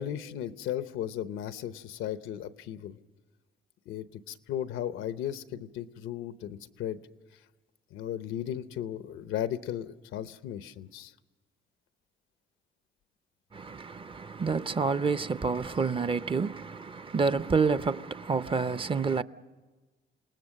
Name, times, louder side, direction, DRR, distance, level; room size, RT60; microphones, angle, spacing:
voice 1, 0.0-3.0 3.9-7.0 7.9-11.1, left 10 dB, 90° left, 0.8 m, -36 dB
voice 2, 13.5-19.2, right 5 dB, 25° right, 0.6 m, -28 dB
28.0 x 18.5 x 6.5 m
cardioid pair, 90°, 20 cm